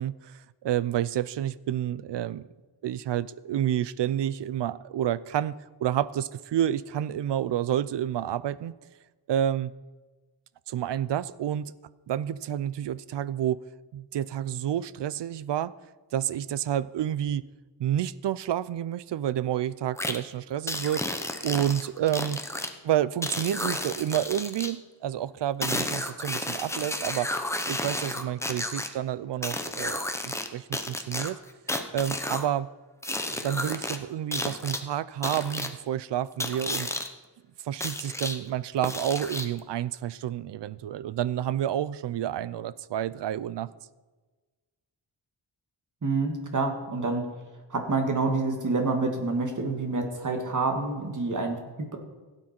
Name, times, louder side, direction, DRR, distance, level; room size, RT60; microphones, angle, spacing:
voice 1, 0.0-2.5 2.8-5.6 5.8-8.7 9.3-9.7 10.7-11.7 12.1-13.6 13.9-15.7 16.1-17.4 17.8-21.1 21.4-22.4 22.8-27.3 27.7-31.4 31.9-32.7 33.3-36.9 37.6-43.7, right 11 dB, 75° right, 19 dB, 0.5 m, -29 dB
sound 1, 20.0-20.2 20.7-22.7 23.2-24.7 25.6-28.9 29.4-30.5 30.7-32.5 33.0-34.0 34.3-34.8 35.2-35.7 36.4-37.1 37.8-38.4 38.8-39.6, left 1 dB, 5° left, 0.8 m, -32 dB
voice 2, 46.0-47.3 47.7-52.0, right 3 dB, 45° right, 4 dB, 2.0 m, -28 dB
16.5 x 9.0 x 4.4 m, 1.3 s
wide cardioid pair, 130°, 43 cm